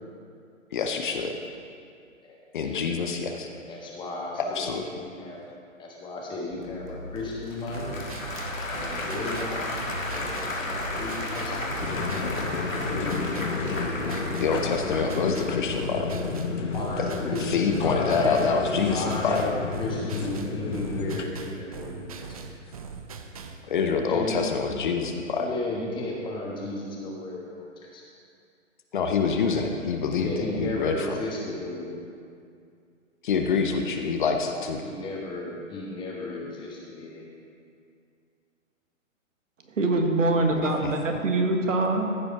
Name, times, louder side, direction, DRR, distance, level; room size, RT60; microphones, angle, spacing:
voice 1, 0.7-1.4 2.5-3.5 4.4-4.7 14.4-16.1 17.0-17.1 17.4-19.4 23.6-25.5 28.9-31.2 33.2-34.8 40.5-40.9, left 5 dB, 40° left, 4 dB, 0.7 m, -26 dB
voice 2, 3.4-4.8 5.2-5.4 5.8-8.0 8.7-9.7 10.1-10.6 10.9-11.8 12.5-13.7 16.7-17.4 17.8-18.5 18.9-22.4 24.1-24.3 25.2-27.6 27.9-28.0 30.1-31.9 34.8-37.2, left 2 dB, 10° left, -3 dB, 1.3 m, -34 dB
Applause / Crowd, 6.5-16.1, left 2 dB, 80° left, 1.6 m, -33 dB
sound 1, 7.7-23.6, right 5 dB, 30° right, 0.5 m, -41 dB
sound 2, 11.8-21.2, left 5 dB, 65° left, 1.0 m, -31 dB
voice 3, 39.7-42.2, right 2 dB, 70° right, 3 dB, 1.5 m, -24 dB
14.5 x 5.1 x 4.9 m, 2.4 s
figure-of-eight pair, 130°, 39 cm